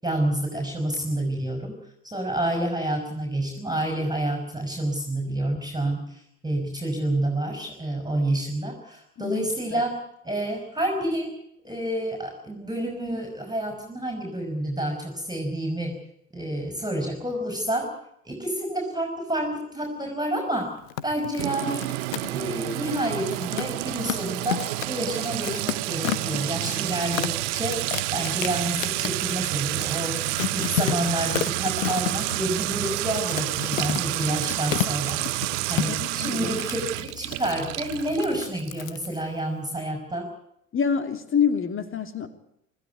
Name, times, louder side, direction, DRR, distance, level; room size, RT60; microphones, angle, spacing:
voice 1, 0.0-1.8 2.0-11.4 11.6-16.0 16.3-17.9 18.2-20.7 21.0-21.8 22.2-35.3 35.7-40.3, right 1 dB, 10° right, 3 dB, 5.3 m, -29 dB
sound 1, 20.8-39.2, left 12 dB, 65° left, 1.3 m, -32 dB
Sink (filling or washing) / Trickle dribble / Fill (with liquid), 21.4-38.8, right 20 dB, 60° right, 0.8 m, -29 dB
voice 2, 35.9-36.6 40.7-42.3, left 7 dB, 30° left, 9 dB, 2.9 m, -26 dB
25.5 x 14.5 x 9.3 m, 0.78 s
figure-of-eight pair, 65°, 42 cm